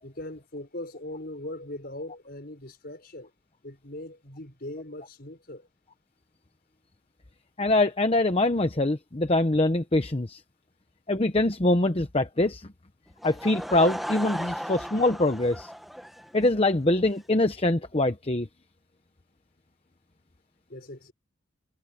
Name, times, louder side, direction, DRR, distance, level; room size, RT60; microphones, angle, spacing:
voice 1, 0.0-3.3 3.6-5.7 20.7-21.1, left 1 dB, 50° left, 5.7 m, -40 dB
voice 2, 7.6-10.4 11.1-12.7 13.2-15.7 16.3-18.5, left 2 dB, 30° left, 0.9 m, -24 dB
Laughter / Crowd, 13.2-16.7, equal, ahead, 1.5 m, -36 dB
head